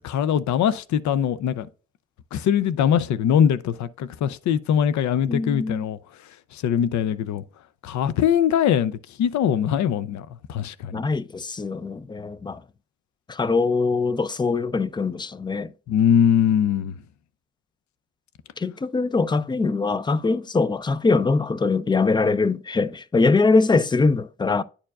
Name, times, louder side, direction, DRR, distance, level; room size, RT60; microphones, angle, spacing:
voice 1, 0.0-1.7 2.3-6.0 6.5-7.4 7.8-11.0 15.9-16.9, left 9 dB, 70° left, 0.6 m, -22 dB
voice 2, 5.3-5.8 10.9-12.6 13.3-15.7 18.6-24.6, left 4 dB, 15° left, 0.4 m, -22 dB
10.0 x 4.5 x 2.4 m
cardioid pair, 90°, 30 cm